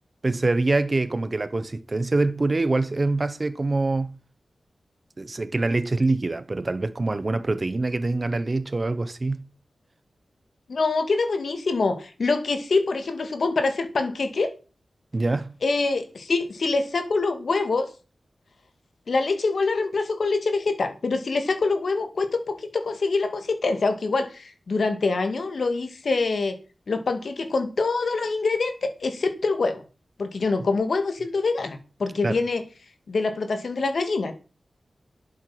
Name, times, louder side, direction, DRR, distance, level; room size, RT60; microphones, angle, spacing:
voice 1, 0.2-4.2 5.2-9.5 15.1-15.5 32.2-32.4, right 2 dB, 35° right, 1.1 m, -25 dB
voice 2, 10.7-14.5 15.6-17.9 19.1-26.6 26.9-29.8 30.2-32.6 33.1-34.3, left 3 dB, 65° left, 2.2 m, -25 dB
11.0 x 7.9 x 6.1 m
wide cardioid pair, 100°, 0 cm